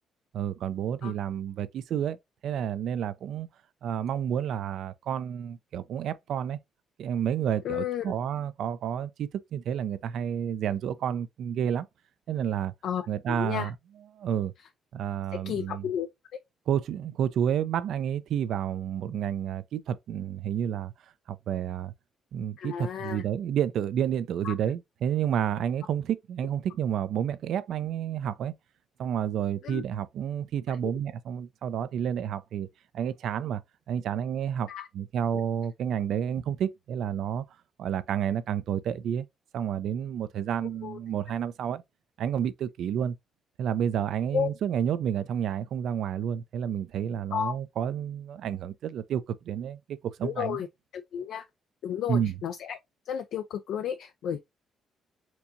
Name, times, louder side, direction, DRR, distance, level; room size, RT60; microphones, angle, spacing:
voice 1, 0.3-2.2 2.4-3.5 3.8-6.6 7.0-11.9 12.3-12.7 13.1-13.7 14.1-14.5 14.9-15.9 16.7-20.9 21.3-21.9 22.3-28.5 29.0-32.7 32.9-33.6 33.9-34.7 34.9-37.4 37.8-39.3 39.5-41.8 42.2-43.2 43.6-50.6 52.1-52.3, right 9 dB, 75° right, 0.4 m, -30 dB
voice 2, 7.6-8.1 12.8-13.7 15.3-16.1 22.6-23.2 24.4-24.5 29.6-29.8 30.7-30.9 34.7-34.9 35.3-35.4 40.8-41.0 44.3-44.5 47.3-47.6 50.2-50.7 50.9-51.5 51.8-52.8 53.1-54.4, left 8 dB, 75° left, 0.4 m, -32 dB
4.4 x 2.8 x 2.5 m
cardioid pair, 90°, 0 cm